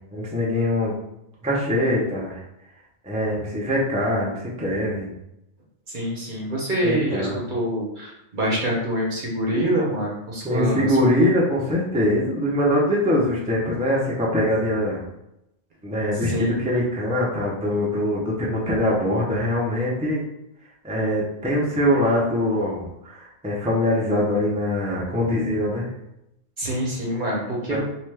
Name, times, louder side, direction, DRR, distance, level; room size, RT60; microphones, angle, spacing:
voice 1, 0.1-0.9 1.4-2.4 3.0-5.1 6.8-7.4 10.4-15.0 15.8-20.2 20.8-25.9 27.7-27.8, left 1 dB, 10° right, -5 dB, 0.3 m, -23 dB
voice 2, 5.9-10.9 16.2-16.6 26.6-27.8, equal, 45° right, -3 dB, 0.8 m, -25 dB
2.8 x 2.2 x 3.2 m, 0.84 s
omnidirectional pair, 1.3 m